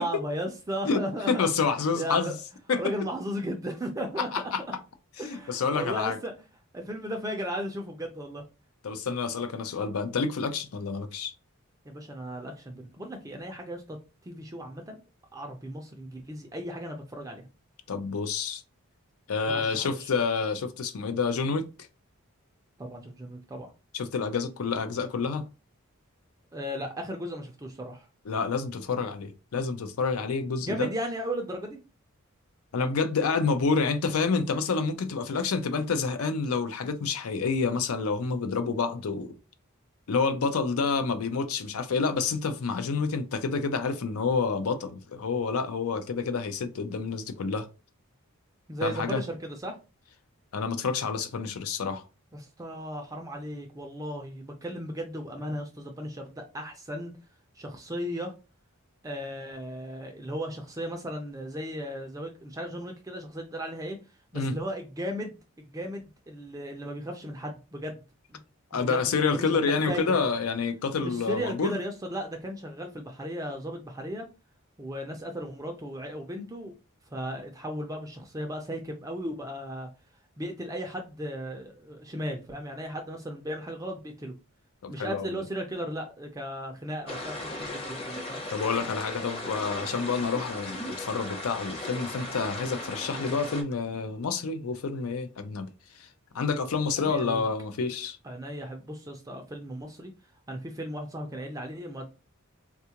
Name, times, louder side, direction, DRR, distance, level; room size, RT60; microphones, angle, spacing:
voice 1, 0.0-1.5 2.0-2.4 2.8-4.5 5.2-6.3 6.7-8.4 11.8-14.0 14.2-15.0 15.3-17.5 19.4-20.1 22.8-23.7 26.5-28.1 30.6-31.8 48.7-49.8 52.3-57.1 57.5-58.3 59.0-64.0 64.3-65.4 65.7-68.0 68.3-68.4 68.7-70.0 71.0-74.3 74.8-76.7 77.1-79.9 80.4-84.3 84.9-88.4 97.0-97.4 98.2-100.1 100.5-102.1, equal, 15° right, 0.4 m, -36 dB
voice 2, 0.9-2.3 2.7-2.8 4.2-4.6 5.2-6.2 8.8-11.3 17.9-18.6 19.3-21.7 23.9-25.5 28.3-30.9 32.7-39.3 40.1-47.7 48.8-49.2 50.5-52.0 64.3-64.6 68.7-71.7 84.8-85.4 88.5-95.7 96.0-96.1 96.3-98.2, left 4 dB, 80° left, 0.5 m, -28 dB
sound 1, 87.1-93.6, left 1 dB, 25° left, 0.7 m, -37 dB
3.5 x 2.3 x 2.8 m
head